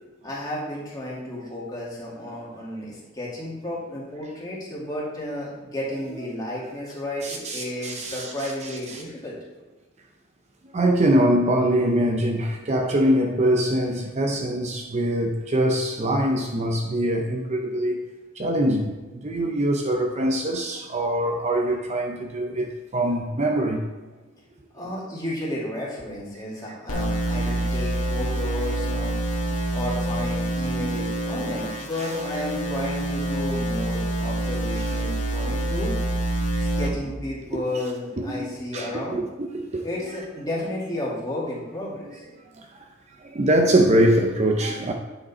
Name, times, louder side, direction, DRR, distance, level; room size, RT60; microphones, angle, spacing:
voice 1, 0.2-9.4 24.7-29.1 29.7-35.9 36.6-39.2 39.8-42.2, left 1 dB, 20° left, -6 dB, 2.2 m, -32 dB
voice 2, 7.2-9.0 10.7-18.0 18.4-18.9 19.2-23.8 27.4-27.5 29.5-29.8 35.5-35.6 36.5-36.6 38.2-38.5 38.7-38.9 39.5-39.9 42.6-42.7 43.2-44.9, right 1 dB, 30° right, 3 dB, 0.5 m, -23 dB
sound 1, 26.9-36.9, right 1 dB, 90° left, 1.6 m, -26 dB
8.9 x 5.1 x 4.2 m, 1.2 s
head